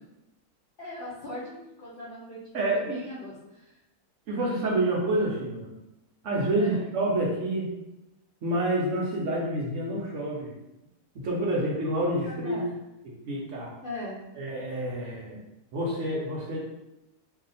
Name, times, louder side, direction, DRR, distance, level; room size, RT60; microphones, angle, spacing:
voice 1, 0.8-3.8 6.6-6.8 12.3-12.7 13.8-14.2 14.6-14.7, left 1 dB, 60° left, -7 dB, 0.5 m, -39 dB
voice 2, 2.5-3.0 4.3-5.7 6.2-7.7 8.4-10.5 11.1-12.6 13.0-13.7 14.4-15.4 15.7-16.6, right 1 dB, 65° right, -3 dB, 0.8 m, -28 dB
2.7 x 2.4 x 3.9 m, 0.93 s
omnidirectional pair, 1.7 m